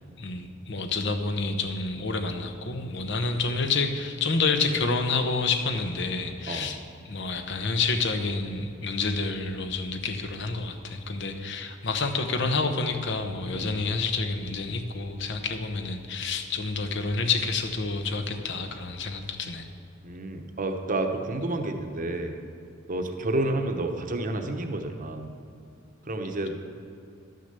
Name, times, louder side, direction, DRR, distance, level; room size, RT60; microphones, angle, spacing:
voice 1, 0.2-6.8 7.0-19.7, left 4 dB, 65° left, 7 dB, 0.9 m, -28 dB
voice 2, 20.0-22.4 22.9-25.3 26.1-26.5, right 2 dB, 45° right, 5 dB, 0.9 m, -30 dB
11.5 x 6.5 x 6.8 m, 2.5 s
head